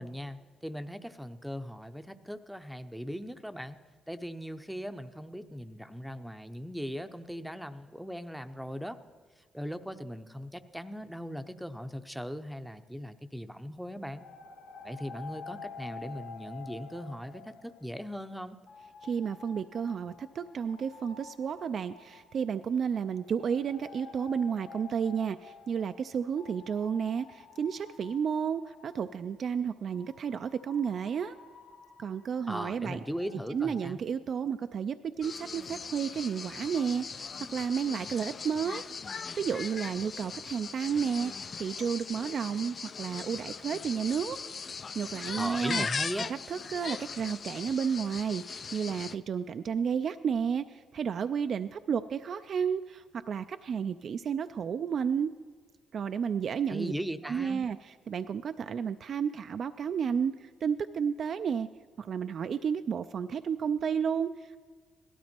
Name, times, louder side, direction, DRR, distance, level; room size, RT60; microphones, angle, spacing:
voice 1, 0.0-3.8 4.1-9.0 9.4-14.3 14.8-18.6 32.5-34.0 45.4-46.3 56.7-57.6, equal, ahead, 9 dB, 0.7 m, -39 dB
sound 1, 14.2-18.3 18.7-29.3 29.9-33.9, left 5 dB, 85° left, 1.3 m, -50 dB
voice 2, 19.0-31.4 32.0-33.0 33.5-38.8 39.3-44.4 45.0-45.9 46.3-55.3 55.9-56.9 57.2-61.7 62.0-64.6, right 7 dB, 55° right, 10 dB, 0.4 m, -32 dB
sound 2, 35.2-49.2, left 5 dB, 40° left, 0.4 m, -39 dB
17.0 x 12.5 x 4.4 m, 1.5 s
cardioid pair, 90°, 0 cm